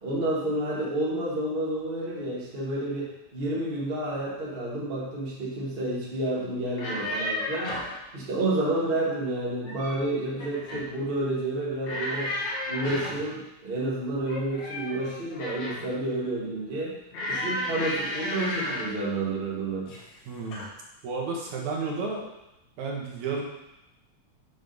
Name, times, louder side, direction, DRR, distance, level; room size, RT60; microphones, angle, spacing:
voice 1, 0.0-7.7 8.1-12.3 12.7-16.9 17.3-19.9, right 1 dB, 25° right, -5 dB, 1.2 m, -30 dB
sound 1, 6.6-8.0 9.4-10.0 10.4-10.9 11.8-13.3 14.2-15.9 17.1-19.0 19.9-20.2 20.5-20.7, left 1 dB, 75° left, 2.4 m, -33 dB
voice 2, 20.3-20.7 21.0-22.2 22.8-23.4, right 4 dB, 75° right, -1 dB, 2.6 m, -32 dB
8.3 x 3.5 x 5.3 m, 0.92 s
omnidirectional pair, 3.4 m